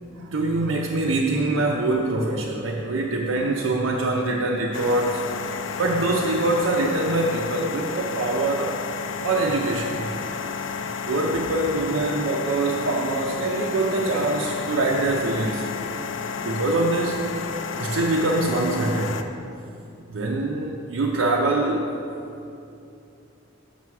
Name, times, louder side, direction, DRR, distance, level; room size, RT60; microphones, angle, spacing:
voice 1, 0.2-5.2 5.8-8.7 9.2-10.1 11.0-15.7 16.4-17.3 17.8-19.2 20.1-21.9, right 2 dB, 75° right, -2 dB, 0.5 m, -24 dB
sound 1, 4.7-19.2, left 6 dB, 60° left, 0.4 m, -31 dB
6.5 x 5.8 x 4.7 m, 2.7 s
head